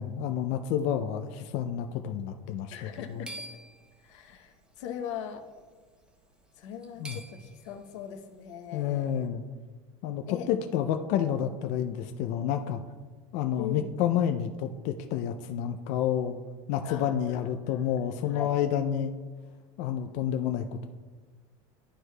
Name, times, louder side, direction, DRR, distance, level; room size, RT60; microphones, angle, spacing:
voice 1, 0.0-3.2 7.0-7.2 8.7-9.4 10.0-12.8 13.3-16.4 16.7-19.1 19.8-20.9, left 9 dB, 50° left, 6 dB, 0.4 m, -29 dB
voice 2, 2.7-3.3 4.0-5.5 6.6-9.1 10.3-10.5 11.1-11.2 13.6-13.9 16.8-18.0 18.3-18.6, left 9 dB, 80° left, 5 dB, 0.8 m, -40 dB
sound 1, 2.8-4.6 5.5-5.8 6.1-6.2 6.6-7.9, right 1 dB, 5° right, 0.6 m, -46 dB
11.5 x 4.7 x 2.2 m, 1.4 s
supercardioid pair, 150°, 15 cm